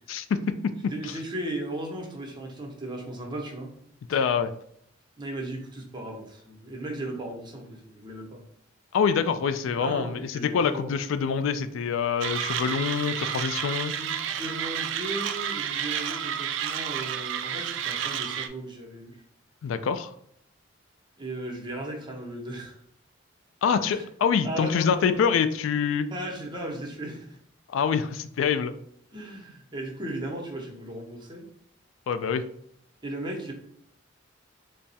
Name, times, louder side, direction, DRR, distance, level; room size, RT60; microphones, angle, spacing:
voice 1, 0.1-0.9 4.1-4.5 8.9-13.9 19.6-20.1 23.6-26.1 27.7-28.7 32.1-32.4, left 6 dB, 90° left, 11 dB, 0.3 m, -25 dB
voice 2, 0.8-3.7 4.1-4.2 5.2-8.4 9.8-10.9 13.9-19.2 21.2-22.8 23.8-24.1 24.4-25.2 26.1-27.4 29.1-31.5 33.0-33.5, right 1 dB, 25° right, 1 dB, 0.7 m, -36 dB
Mechanisms, 12.2-18.5, right 9 dB, 70° right, 0.3 m, -31 dB
3.4 x 2.0 x 4.1 m, 0.69 s
head